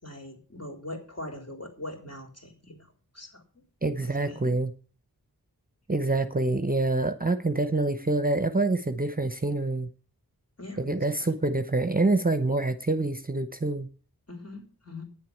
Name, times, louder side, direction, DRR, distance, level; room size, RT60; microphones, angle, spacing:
voice 1, 0.0-3.6 4.0-4.5 10.6-11.3 14.3-15.0, left 1 dB, 45° left, 3 dB, 4.0 m, -42 dB
voice 2, 3.8-4.7 5.9-9.9 10.9-13.9, right 2 dB, 25° right, 10 dB, 0.9 m, -26 dB
9.4 x 7.6 x 8.5 m, 0.40 s
wide cardioid pair, 75°, 36 cm